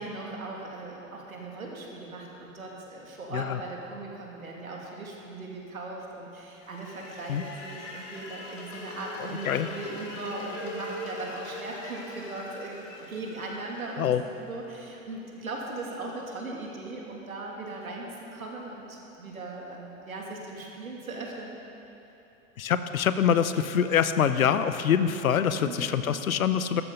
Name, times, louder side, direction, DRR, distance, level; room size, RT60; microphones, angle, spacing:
voice 1, 0.0-21.6 25.6-25.9, right 2 dB, 85° right, -2 dB, 2.7 m, -39 dB
sound 1, 6.6-14.7, left 1 dB, 65° left, 3.6 m, -42 dB
voice 2, 22.6-26.8, left 8 dB, 80° left, 11 dB, 0.9 m, -25 dB
14.0 x 13.0 x 5.5 m, 3.0 s
hypercardioid pair, 95°, 41 cm